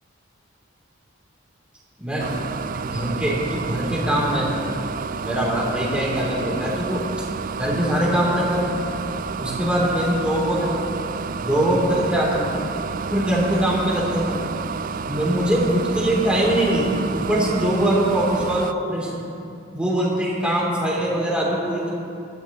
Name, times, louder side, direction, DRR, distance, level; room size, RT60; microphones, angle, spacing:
sound 1, 2.2-18.7, right 5 dB, 40° right, 0.3 m, -30 dB
voice 1, 2.6-4.8 5.2-7.0 7.6-8.8 9.4-10.8 11.4-12.5 13.1-14.4 15.1-19.2 19.7-21.9, right 1 dB, 5° right, -6 dB, 2.9 m, -22 dB
21.0 x 12.5 x 3.0 m, 2.5 s
head